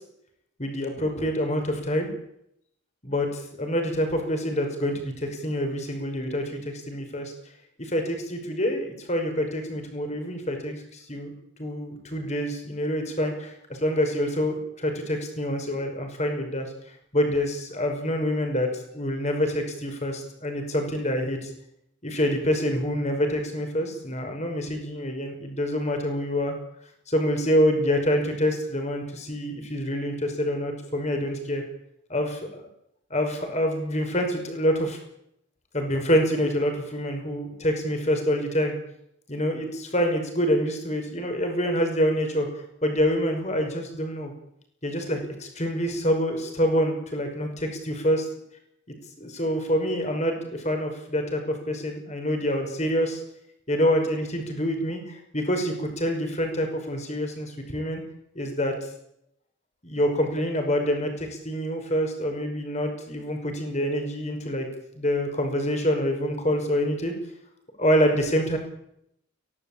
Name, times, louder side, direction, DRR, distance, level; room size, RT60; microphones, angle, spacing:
voice 1, 0.6-2.1 3.0-7.3 7.8-11.3 11.6-21.5 22.0-26.5 27.1-31.6 32.1-32.6 33.1-35.0 35.7-38.7 39.3-42.5 42.8-44.3 44.8-48.3 49.2-53.2 53.7-58.0 58.3-58.9 59.8-64.7 64.9-67.1 67.8-68.6, equal, 35° left, 5 dB, 5.6 m, -26 dB
23.0 x 17.5 x 8.8 m, 0.74 s
head